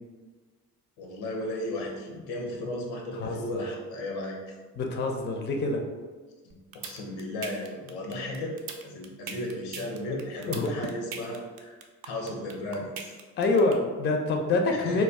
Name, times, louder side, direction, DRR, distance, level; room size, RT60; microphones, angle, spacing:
voice 1, 1.0-4.6 6.4-8.6 8.8-11.8 12.0-13.1 14.7-15.0, left 1 dB, 80° left, 0 dB, 0.6 m, -35 dB
voice 2, 3.1-3.6 4.8-5.8 10.5-10.7 13.4-15.0, left 3 dB, 25° left, 3 dB, 0.4 m, -26 dB
sound 1, 6.5-13.7, right 6 dB, 50° right, 0.5 m, -39 dB
2.2 x 2.1 x 3.4 m, 1.4 s
hypercardioid pair, 40°, 48 cm